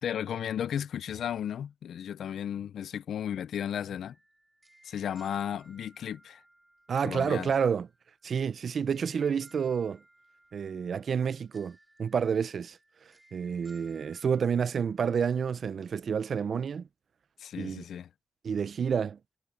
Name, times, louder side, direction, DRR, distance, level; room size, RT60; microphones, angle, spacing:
voice 1, 0.0-4.2 4.8-6.4 7.0-7.5 17.4-18.1, left 9 dB, 90° left, 0.5 m, -34 dB
sound 1, 4.0-14.5, right 1 dB, 15° right, 3.4 m, -61 dB
voice 2, 6.9-7.9 8.2-10.0 10.5-12.8 13.3-16.9 17.6-17.8 18.4-19.2, right 6 dB, 65° right, 0.6 m, -29 dB
cardioid pair, 90°, 0 cm